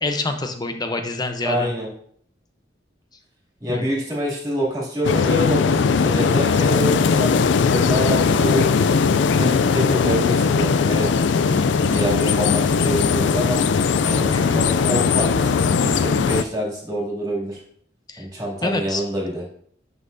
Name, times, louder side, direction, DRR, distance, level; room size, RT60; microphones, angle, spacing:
voice 1, 0.0-1.7 3.7-3.9 14.3-14.6 18.1-18.3 18.6-19.0, left 2 dB, 20° left, 6 dB, 0.7 m, -26 dB
voice 2, 1.4-1.9 3.6-7.3 7.7-8.9 9.3-11.1 11.5-11.6 11.9-13.6 14.0-17.6 18.2-19.4, equal, 20° right, -5 dB, 2.6 m, -26 dB
sound 1, 5.0-16.4, left 5 dB, 70° left, 0.4 m, -19 dB
9.7 x 5.5 x 2.7 m, 0.63 s
head